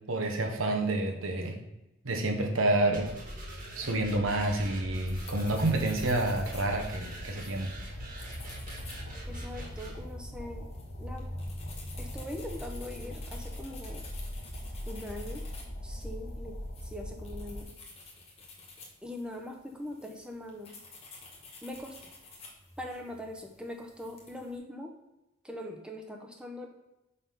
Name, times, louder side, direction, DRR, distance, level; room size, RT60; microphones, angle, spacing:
voice 1, 0.1-1.6 2.0-3.1 3.7-7.7, right 2 dB, 80° right, 3 dB, 1.1 m, -29 dB
sound 1, 2.9-10.0, right 1 dB, 40° right, 1.9 m, -43 dB
sound 2, 4.3-17.6, equal, 75° left, 1.4 m, -42 dB
sound 3, 5.1-24.6, left 2 dB, 30° left, 1.3 m, -49 dB
voice 2, 9.2-10.7 11.0-11.3 12.0-14.0 14.9-15.5 15.8-17.7 19.0-20.8 21.6-22.0 22.8-25.0 25.4-26.7, left 1 dB, 5° right, 2 dB, 0.7 m, -42 dB
5.4 x 4.1 x 5.5 m, 0.96 s
head